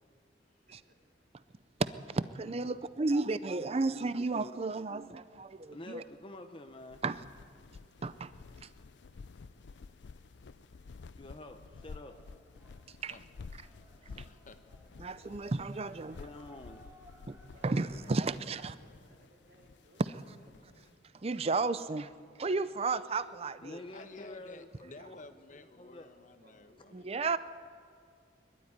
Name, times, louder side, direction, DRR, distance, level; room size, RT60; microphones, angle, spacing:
voice 1, 0.6-0.9 17.4-18.1 18.3-20.1 20.4-20.6 26.0-26.9, equal, 65° right, 0 dB, 4.3 m, -63 dB
voice 2, 1.8-6.0 7.0-7.2 8.0-8.3 8.6-8.7 13.0-13.2 14.2-14.3 15.0-16.2 17.3-17.4 17.6-18.7 20.0-20.2 21.1-22.1 22.4-23.8 26.9-27.4, right 3 dB, 35° right, 14 dB, 0.5 m, -33 dB
voice 3, 5.7-7.0 11.2-12.2 14.0-14.2 16.2-16.8 23.6-25.2 25.5-26.1, left 2 dB, 30° left, 6 dB, 0.8 m, -48 dB
sound 1, 6.7-20.9, left 4 dB, 75° left, 0.5 m, -52 dB
sound 2, 11.7-17.8, equal, 15° right, 1.8 m, -62 dB
voice 4, 12.9-13.2 13.6-14.6 23.9-27.4, left 2 dB, 45° left, 9 dB, 1.1 m, -53 dB
22.0 x 12.5 x 9.6 m, 2.3 s
head